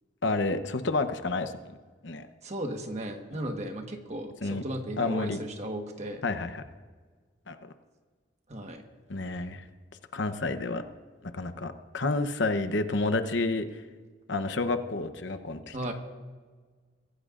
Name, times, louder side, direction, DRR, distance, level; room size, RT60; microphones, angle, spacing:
voice 1, 0.2-1.5 2.0-2.3 4.4-4.6 5.0-5.4 6.2-6.6 7.5-7.7 9.1-9.6 10.1-10.8 11.3-13.6 14.3-15.8, left 3 dB, 65° left, 10 dB, 0.9 m, -29 dB
voice 2, 2.4-6.2 8.5-8.8 15.7-15.9, right 1 dB, 35° right, 4 dB, 1.4 m, -35 dB
24.0 x 16.0 x 2.5 m, 1.5 s
head